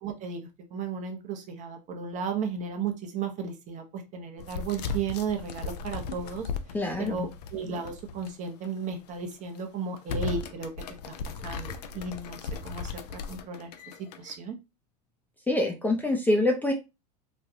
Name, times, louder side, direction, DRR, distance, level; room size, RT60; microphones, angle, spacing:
voice 1, 0.0-6.5 7.0-10.7 11.4-13.7 14.2-14.6, right 5 dB, 35° right, 5 dB, 0.8 m, -34 dB
sound 1, 4.4-8.3 8.6-8.7 9.3-9.6 10.0-14.3, left 4 dB, 75° left, 0.5 m, -37 dB
voice 2, 6.7-7.3 15.5-16.7, left 2 dB, 10° left, 1 dB, 0.5 m, -25 dB
3.1 x 2.3 x 2.6 m, 0.26 s
hypercardioid pair, 95°, 21 cm